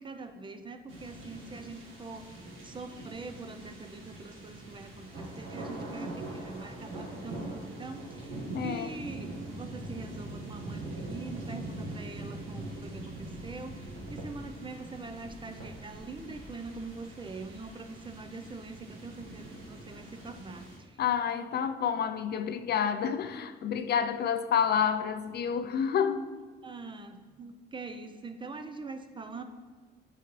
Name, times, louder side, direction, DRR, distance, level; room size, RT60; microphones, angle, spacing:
voice 1, 0.0-21.0 26.6-29.4, right 3 dB, 25° right, 0.5 m, -44 dB
sound 1, 0.9-20.8, right 2 dB, 90° right, 1.3 m, -42 dB
voice 2, 8.5-9.0 21.0-26.3, left 7 dB, 55° left, 0.4 m, -29 dB
8.8 x 4.0 x 3.0 m
cardioid pair, 90°, 20 cm